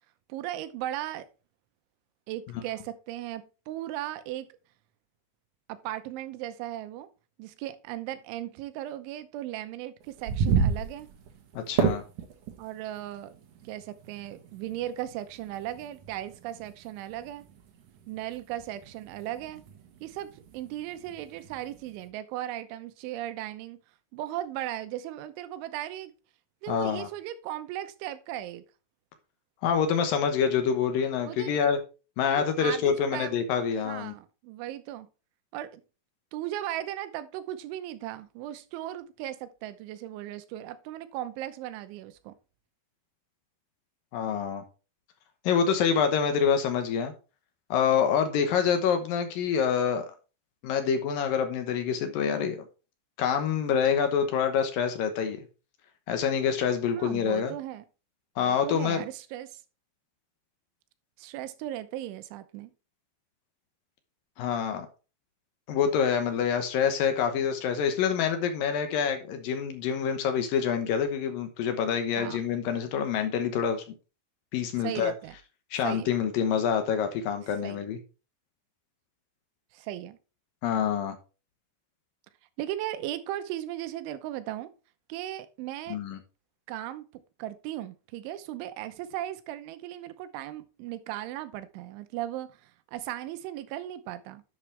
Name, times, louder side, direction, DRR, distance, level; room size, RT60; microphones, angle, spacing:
voice 1, 0.3-1.3 2.3-4.5 5.7-7.1 7.4-11.1 12.6-13.4 13.7-17.4 18.1-19.6 20.0-23.8 24.1-26.1 26.6-28.6 31.2-31.6 32.4-33.4 33.8-35.1 35.5-35.8 36.3-42.3 56.9-57.8 58.4-59.6 61.2-62.7 72.2-72.4 74.8-75.4 75.8-76.1 77.6-77.8 79.7-80.2 82.6-84.7 85.1-86.0 86.7-87.0 87.4-94.4, right 13 dB, 85° right, 3.3 m, -37 dB
sound 1, 10.0-22.1, right 6 dB, 65° right, 2.1 m, -34 dB
voice 2, 11.6-12.0 26.7-27.1 29.6-31.8 32.2-34.1 44.1-44.6 45.4-47.1 47.7-50.1 50.6-52.6 53.2-55.4 56.1-57.5 58.4-59.0 64.4-64.9 65.7-73.8 74.5-75.1 75.7-78.0 80.6-81.2 85.9-86.2, left 7 dB, 70° left, 2.2 m, -26 dB
11.0 x 7.2 x 3.3 m
omnidirectional pair, 5.4 m